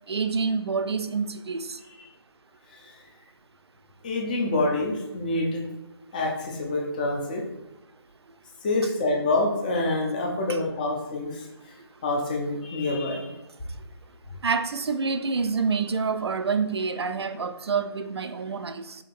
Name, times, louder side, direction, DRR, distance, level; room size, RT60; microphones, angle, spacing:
voice 1, 0.1-1.8 14.4-19.0, right 5 dB, 80° right, 10 dB, 0.4 m, -27 dB
voice 2, 4.0-5.6 6.1-7.4 8.6-11.5 12.0-13.3, left 2 dB, 20° left, 1 dB, 0.5 m, -26 dB
5.1 x 2.8 x 2.5 m, 1.0 s
figure-of-eight pair, 155°, 13 cm